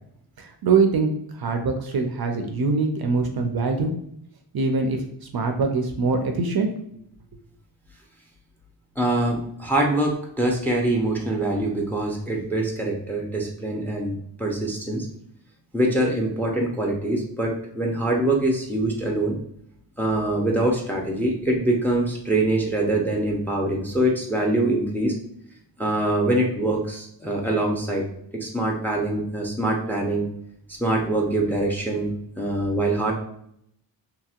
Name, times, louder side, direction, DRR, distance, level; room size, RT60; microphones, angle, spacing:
voice 1, 0.4-3.9 4.5-6.7, right 4 dB, 55° right, 4 dB, 0.5 m, -23 dB
voice 2, 9.0-15.1 15.7-19.4 20.0-25.1 25.8-28.0 28.3-30.3 30.8-33.1, right 1 dB, 5° left, 0 dB, 0.5 m, -24 dB
2.8 x 2.8 x 2.3 m, 0.72 s
wide cardioid pair, 115°, 46 cm